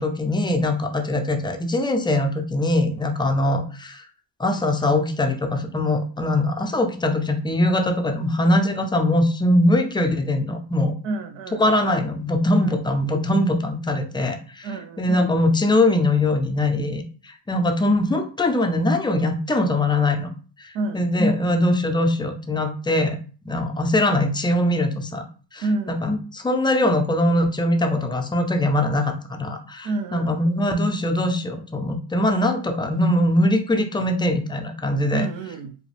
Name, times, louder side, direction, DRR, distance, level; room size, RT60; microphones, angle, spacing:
voice 1, 0.0-4.0 4.4-10.9 11.6-14.7 15.0-20.3 20.6-23.2 23.4-25.2 25.5-35.3, left 1 dB, 10° left, 0.3 m, -22 dB
voice 2, 11.0-11.7 12.6-12.8 14.6-15.2 20.7-21.1 25.6-26.0 29.8-30.4 35.1-35.8, right 2 dB, 90° right, 0.7 m, -29 dB
4.9 x 2.0 x 3.3 m
cardioid pair, 135°, 44 cm